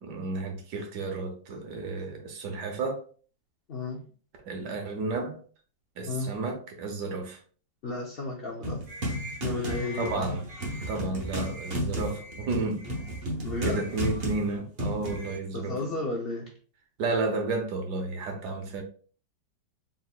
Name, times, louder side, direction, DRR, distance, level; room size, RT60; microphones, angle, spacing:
voice 1, 0.0-3.0 4.4-5.4 6.0-7.4 9.9-10.4 10.9-12.9 13.6-15.8 17.0-18.8, right 3 dB, 70° right, 1.3 m, -32 dB
voice 2, 3.7-4.0 6.1-6.4 7.8-8.8 9.4-10.2 13.4-13.9 15.5-16.5, left 2 dB, 75° left, 0.5 m, -33 dB
sound 1, 8.6-15.4, equal, 40° right, 0.9 m, -33 dB
4.1 x 3.7 x 2.3 m
omnidirectional pair, 2.0 m